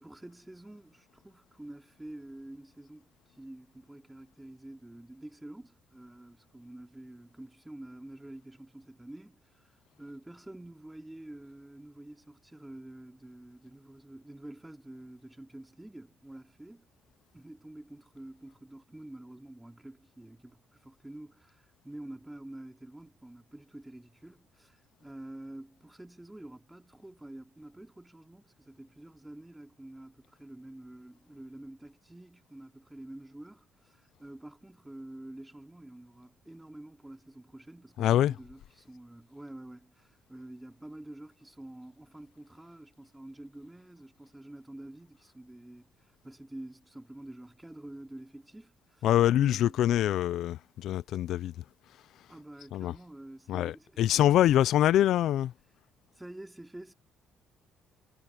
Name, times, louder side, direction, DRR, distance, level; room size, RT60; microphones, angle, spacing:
voice 1, 0.0-3.1 3.3-9.7 10.0-16.9 17.3-49.1 49.3-49.8 52.3-54.0 54.5-54.7 56.1-56.9, right 1 dB, 10° right, 4.2 m, -48 dB
voice 2, 38.0-38.4 49.0-51.6 52.7-53.0 53.5-55.5, left 12 dB, 70° left, 0.6 m, -25 dB
cardioid pair, 105°, 0 cm